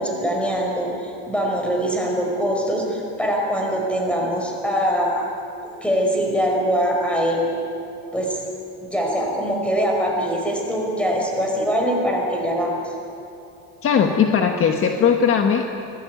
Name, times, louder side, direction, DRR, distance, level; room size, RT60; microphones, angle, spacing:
voice 1, 0.0-5.2 5.8-7.5 8.1-8.4 8.8-12.9, equal, 5° left, -1 dB, 5.2 m, -23 dB
voice 2, 13.8-15.7, left 7 dB, 40° left, 4 dB, 1.4 m, -18 dB
25.0 x 18.5 x 9.3 m, 2.6 s
cardioid pair, 165°, 35 cm